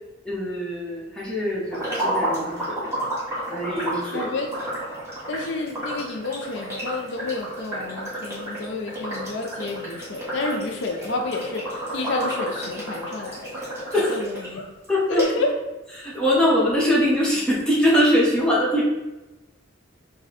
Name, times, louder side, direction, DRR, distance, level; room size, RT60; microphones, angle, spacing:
voice 1, 0.2-2.9 3.5-4.3 13.9-14.2 14.6-15.2 16.0-18.8, equal, 5° left, -7 dB, 1.0 m, -22 dB
sound 1, 1.7-14.5 14.8-14.9 15.2-15.3, right 1 dB, 15° right, 1.3 m, -31 dB
voice 2, 4.1-4.5 5.3-13.5 14.1-14.6 15.1-15.5, left 3 dB, 65° left, 2 dB, 0.5 m, -30 dB
4.8 x 2.3 x 4.0 m, 1.1 s
head